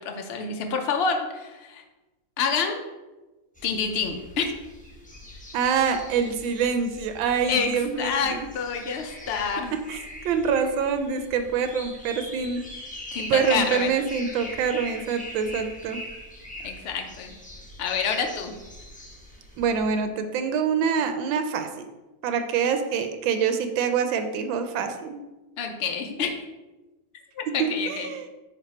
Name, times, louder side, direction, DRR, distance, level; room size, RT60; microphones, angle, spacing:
voice 1, 0.0-1.8 2.4-2.8 3.6-4.5 7.5-9.7 13.1-14.0 16.6-17.3 17.8-18.5 25.6-26.4 27.4-28.1, left 5 dB, 75° left, 3 dB, 0.5 m, -28 dB
sound 1, 3.5-19.8, left 1 dB, 5° left, 0.7 m, -42 dB
voice 2, 5.5-8.5 9.9-10.0 10.2-12.6 13.3-16.0 19.6-21.9 22.2-25.2 27.6-28.3, right 6 dB, 85° right, 8 dB, 1.4 m, -25 dB
9.5 x 3.2 x 4.2 m, 1.1 s
omnidirectional pair, 2.1 m